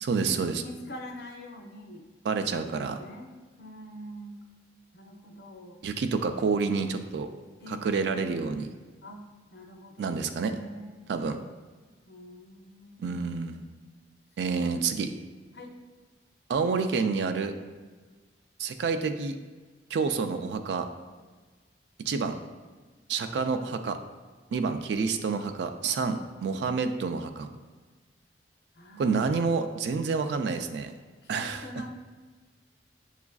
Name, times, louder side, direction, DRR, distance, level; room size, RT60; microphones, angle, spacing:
voice 1, 0.0-0.6 2.2-3.0 5.8-7.3 7.7-8.7 10.0-10.5 11.1-11.4 13.0-13.6 14.4-15.1 16.5-17.6 18.6-19.3 19.9-20.9 22.0-22.4 23.1-24.0 24.5-27.5 29.0-30.9 31.3-31.7, right 5 dB, 70° right, 8 dB, 0.3 m, -28 dB
voice 2, 0.6-2.0 2.4-3.3 3.6-4.4 4.9-5.8 7.6-8.4 9.0-9.2 9.5-11.0 12.1-13.4 14.4-15.3 15.5-15.7 28.8-29.1 31.2-32.1, equal, 65° left, 2 dB, 0.5 m, -45 dB
6.8 x 2.4 x 2.3 m, 1.4 s
head